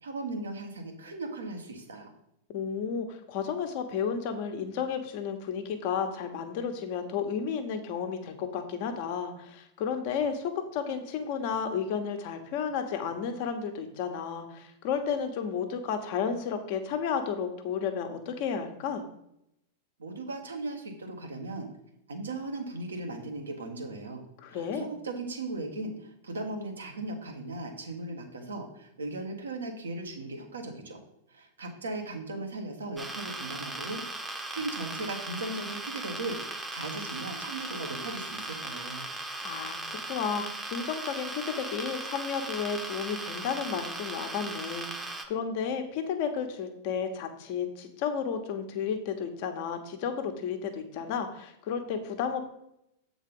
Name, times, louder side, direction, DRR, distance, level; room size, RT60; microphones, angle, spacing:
voice 1, 0.0-2.1 20.0-21.7 22.1-24.2 24.5-31.0 31.3-39.1, right 2 dB, 85° right, 3 dB, 1.4 m, -37 dB
voice 2, 2.5-19.0 24.4-24.9 39.4-52.4, left 6 dB, 55° left, 6 dB, 1.1 m, -32 dB
sound 1, 33.0-45.3, right 2 dB, 10° right, 0.9 m, -38 dB
7.5 x 4.0 x 5.4 m, 0.79 s
hypercardioid pair, 100°, 0 cm